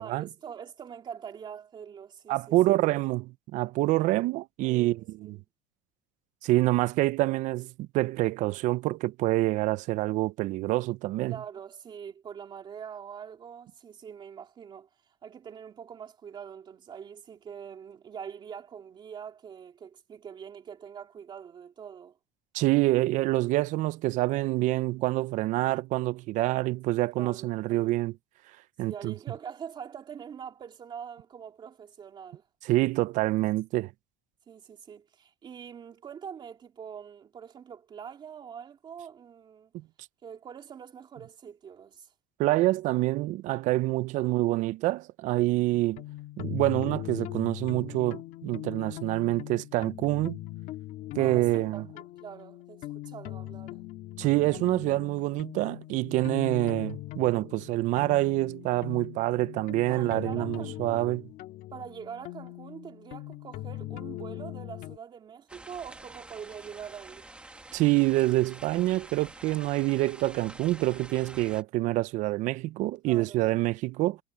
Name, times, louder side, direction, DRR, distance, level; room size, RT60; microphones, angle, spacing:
voice 1, 0.0-2.6 4.6-5.4 11.3-14.9 15.2-22.2 27.1-27.9 28.8-32.5 34.5-39.7 40.2-42.1 51.2-53.8 59.9-61.2 61.7-67.3 73.0-73.5, right 7 dB, 25° right, 2.9 m, -44 dB
voice 2, 2.3-5.4 6.4-11.4 22.5-28.1 28.8-29.1 32.6-33.9 42.4-46.0 46.4-50.4 51.2-51.9 54.2-61.2 67.7-74.2, right 18 dB, 45° right, 0.5 m, -26 dB
sound 1, 45.7-65.0, left 16 dB, 50° left, 2.0 m, -40 dB
sound 2, 65.5-71.6, right 2 dB, 5° right, 1.8 m, -48 dB
cardioid pair, 165°, 18 cm